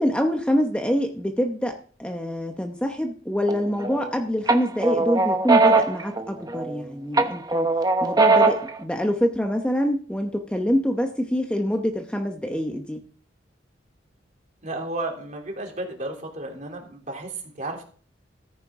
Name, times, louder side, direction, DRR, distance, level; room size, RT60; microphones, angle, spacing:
voice 1, 0.0-7.7 8.0-13.0, equal, 5° left, 4 dB, 0.9 m, -25 dB
sound 1, 3.5-4.1 4.5-6.8 7.2-8.8, right 3 dB, 20° right, 0.9 m, -20 dB
voice 2, 14.6-17.8, right 2 dB, 40° right, 1 dB, 3.1 m, -33 dB
14.0 x 9.7 x 3.7 m, 0.43 s
head